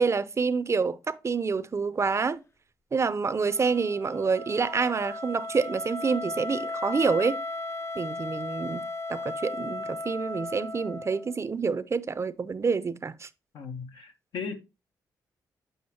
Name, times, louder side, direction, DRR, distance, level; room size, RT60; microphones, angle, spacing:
voice 1, 0.0-2.4 2.9-7.4 8.0-13.3, right 5 dB, 40° right, 0.5 m, -27 dB
Wind instrument woodwind instrument, 3.3-11.3, left 2 dB, 35° left, 0.5 m, -36 dB
voice 2, 13.5-14.6, left 5 dB, 75° left, 0.9 m, -37 dB
7.8 x 4.9 x 2.8 m
cardioid pair, 65°, 8 cm